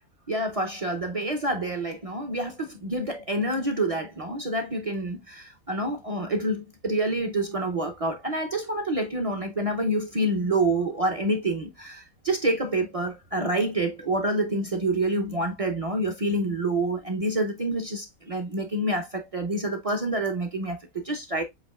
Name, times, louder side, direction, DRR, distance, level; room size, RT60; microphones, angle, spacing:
voice 1, 0.3-21.4, right 1 dB, 50° right, 0.4 m, -27 dB
7.6 x 2.8 x 2.2 m
omnidirectional pair, 1.5 m